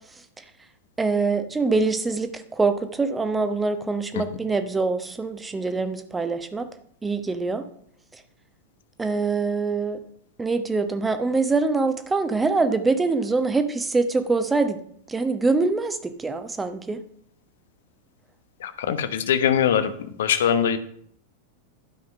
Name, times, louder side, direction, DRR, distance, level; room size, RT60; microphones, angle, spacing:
voice 1, 1.0-6.7 7.0-7.6 9.0-10.0 10.4-14.8 15.1-17.0, right 3 dB, 10° right, 9 dB, 1.1 m, -24 dB
voice 2, 18.9-19.9 20.2-20.8, left 8 dB, 60° left, 11 dB, 1.0 m, -21 dB
12.0 x 5.6 x 5.5 m, 0.64 s
figure-of-eight pair, 90°, 0 cm